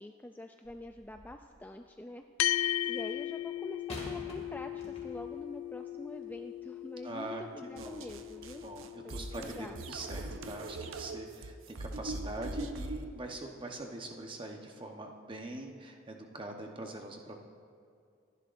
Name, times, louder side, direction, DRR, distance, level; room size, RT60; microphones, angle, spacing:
voice 1, 0.0-2.2 2.9-8.6 9.0-9.8, left 1 dB, 10° left, 5 dB, 0.3 m, -45 dB
sound 1, 0.6-1.5 3.9-5.4 6.2-6.3, left 1 dB, 30° left, 2.3 m, -47 dB
sound 2, 2.4-11.1, left 13 dB, 90° left, 0.3 m, -38 dB
voice 2, 7.0-8.1 8.6-17.4, right 2 dB, 25° right, 2 dB, 1.0 m, -43 dB
sound 3, 7.8-13.1, right 2 dB, 85° right, 0.7 m, -41 dB
26.0 x 11.0 x 2.6 m, 2.4 s
head